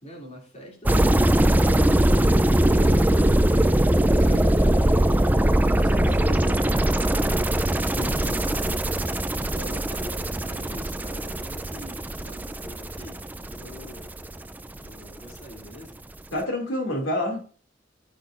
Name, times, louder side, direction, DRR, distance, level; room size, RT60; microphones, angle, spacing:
voice 1, 0.0-3.2 4.1-5.2 5.8-6.7 9.5-14.2 14.7-16.0, equal, 35° left, 0 dB, 2.7 m, -44 dB
sound 1, 0.9-14.9 15.2-15.4, right 1 dB, 10° right, 0.4 m, -21 dB
voice 2, 5.9-6.5 8.0-8.6 16.3-17.6, left 1 dB, 85° left, 3 dB, 2.7 m, -30 dB
16.5 x 6.4 x 2.5 m, 0.40 s
head